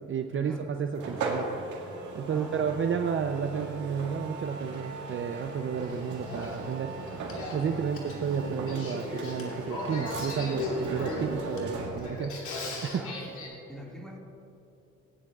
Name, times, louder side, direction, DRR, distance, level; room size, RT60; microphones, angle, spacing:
voice 1, 0.0-7.2 7.5-13.0, right 6 dB, 40° right, 5 dB, 0.6 m, -32 dB
sound 1, 0.9-12.2, right 3 dB, 75° right, 1.9 m, -38 dB
voice 2, 2.3-3.0 7.7-8.0 12.9-13.3 13.7-14.2, equal, ahead, -2 dB, 2.0 m, -45 dB
Male speech man speaking / Female speech woman speaking / Conversation, 5.8-13.5, left 2 dB, 80° left, 2.6 m, -37 dB
18.0 x 10.0 x 2.4 m, 3.0 s
cardioid pair, 90°, 30 cm